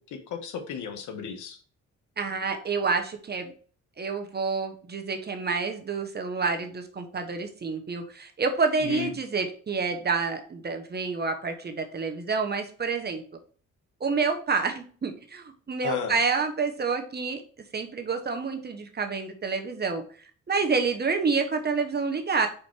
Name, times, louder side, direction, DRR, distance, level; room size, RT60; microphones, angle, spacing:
voice 1, 0.0-1.6 8.8-9.1 15.8-16.2, left 6 dB, 80° left, 6 dB, 1.3 m, -34 dB
voice 2, 2.2-3.5 4.0-13.2 14.0-17.4 17.7-22.5, right 4 dB, 35° right, 5 dB, 1.2 m, -28 dB
5.1 x 4.4 x 4.5 m, 0.43 s
cardioid pair, 90°, 30 cm